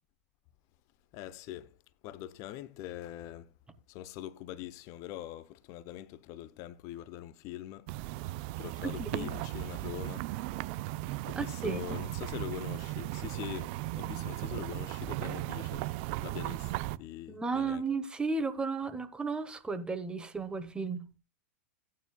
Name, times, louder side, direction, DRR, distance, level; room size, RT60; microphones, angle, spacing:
voice 1, 1.1-1.7 2.0-3.5 3.9-7.9 8.6-10.3 11.3-15.9 16.2-17.8, left 13 dB, 45° left, 0.9 m, -43 dB
sound 1, 7.9-17.0, right 17 dB, 50° right, 0.5 m, -36 dB
voice 2, 8.8-9.3 11.4-12.0 17.3-21.1, right 4 dB, 10° right, 1.1 m, -34 dB
16.5 x 9.5 x 2.3 m
hypercardioid pair, 100°, 8 cm